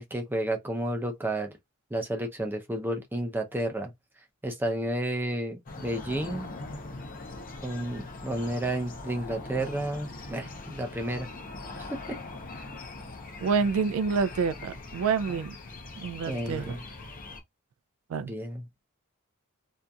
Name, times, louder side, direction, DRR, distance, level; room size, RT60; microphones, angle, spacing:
voice 1, 0.0-1.5 1.9-3.9 4.4-6.5 7.6-11.3 11.8-12.2 15.3-15.4 16.3-16.8 18.2-18.7, right 1 dB, 10° right, 0.5 m, -31 dB
sound 1, 5.7-17.4, left 2 dB, 40° left, 0.6 m, -41 dB
voice 2, 13.4-15.5 16.0-16.8 18.1-18.3, right 5 dB, 70° right, 0.3 m, -28 dB
2.7 x 2.4 x 2.3 m
head